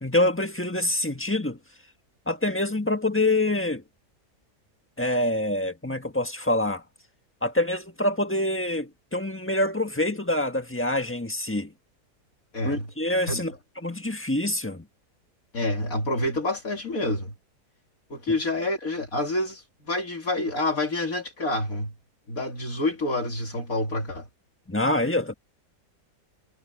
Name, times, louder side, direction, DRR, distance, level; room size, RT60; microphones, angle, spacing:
voice 1, 0.0-1.6 2.3-3.8 5.0-6.8 7.4-11.7 12.6-13.5 13.8-14.8 24.7-25.3, left 1 dB, 10° left, 1.4 m, -26 dB
voice 2, 12.5-12.9 13.3-13.4 15.5-17.3 18.1-21.9 22.3-24.3, left 2 dB, 55° left, 3.1 m, -28 dB
omnidirectional pair, 1.8 m